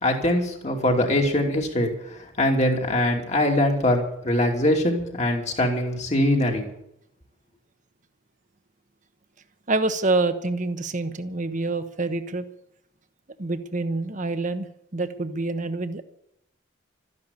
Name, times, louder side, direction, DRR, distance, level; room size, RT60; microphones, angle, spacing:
voice 1, 0.0-1.9 2.4-6.7, left 1 dB, 35° left, 2 dB, 2.8 m, -22 dB
voice 2, 9.7-12.4 13.4-14.7 14.9-16.0, right 2 dB, 40° right, 9 dB, 1.2 m, -26 dB
13.5 x 11.0 x 8.4 m, 0.77 s
head